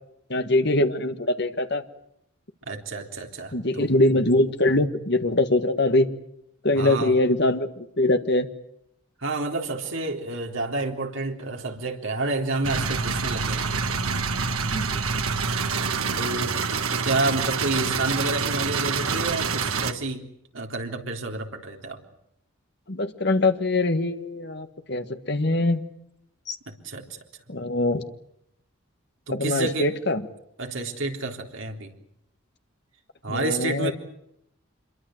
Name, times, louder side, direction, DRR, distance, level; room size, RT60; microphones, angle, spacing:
voice 1, 0.3-1.8 3.5-6.1 6.6-8.5 14.7-15.2 22.9-25.9 26.5-26.6 27.5-28.0 29.3-30.2 33.3-33.9, left 2 dB, 50° left, 8 dB, 1.6 m, -23 dB
voice 2, 2.7-3.9 6.7-7.1 9.2-14.0 16.2-16.7 17.0-20.2 20.5-22.0 26.8-27.2 29.3-29.9 30.6-31.9 33.2-33.9, right 2 dB, 65° right, 2 dB, 3.7 m, -29 dB
sound 1, 12.6-19.9, right 5 dB, 90° right, 1.7 m, -26 dB
26.5 x 22.5 x 7.9 m, 0.78 s
head